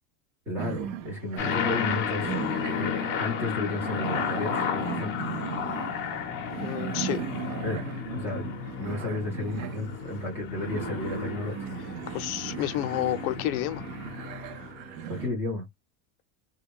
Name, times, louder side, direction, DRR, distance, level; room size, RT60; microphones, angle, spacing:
voice 1, 0.5-2.3 2.8-2.9 3.2-5.1 7.6-7.8 8.1-11.6 15.1-15.6, left 2 dB, 5° right, 0.3 m, -32 dB
sound 1, 0.6-15.3, right 9 dB, 60° right, 0.6 m, -38 dB
sound 2, 1.4-15.1, left 8 dB, 25° left, 0.6 m, -33 dB
voice 2, 6.6-7.2 12.1-13.9, left 14 dB, 65° left, 0.6 m, -30 dB
3.3 x 2.3 x 3.4 m
cardioid pair, 180°, 46 cm